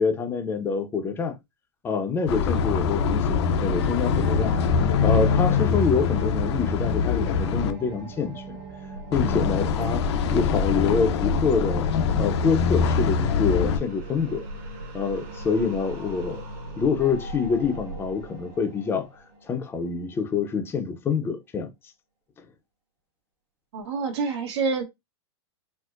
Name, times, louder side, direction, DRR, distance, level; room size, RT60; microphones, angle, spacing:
voice 1, 0.0-1.4 1.8-4.6 5.0-8.6 9.1-11.9 12.2-14.5 14.9-16.4 16.8-19.1 19.5-21.7, left 5 dB, 15° left, 0.5 m, -26 dB
sound 1, 2.3-7.7 9.1-13.8, left 5 dB, 75° left, 0.7 m, -23 dB
sound 2, 4.0-20.2, right 1 dB, 50° right, 1.2 m, -39 dB
voice 2, 23.7-24.8, right 4 dB, 80° right, 1.2 m, -27 dB
4.3 x 2.0 x 2.5 m
supercardioid pair, 145°, 14 cm